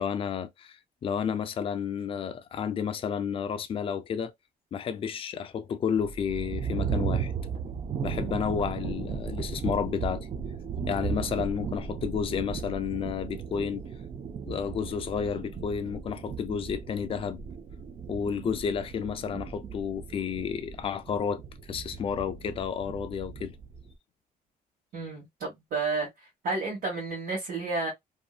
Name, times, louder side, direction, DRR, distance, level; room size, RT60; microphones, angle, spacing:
voice 1, 0.0-4.3 4.7-7.3 8.0-10.3 10.9-13.9 14.5-17.4 18.1-21.4 21.7-23.6, left 7 dB, 35° left, 0.4 m, -31 dB
sound 1, 5.9-23.9, right 6 dB, 35° right, 0.4 m, -36 dB
voice 2, 24.9-26.1 26.4-27.9, right 3 dB, 75° right, 1.3 m, -31 dB
2.7 x 2.6 x 2.3 m
cardioid pair, 150°, 16 cm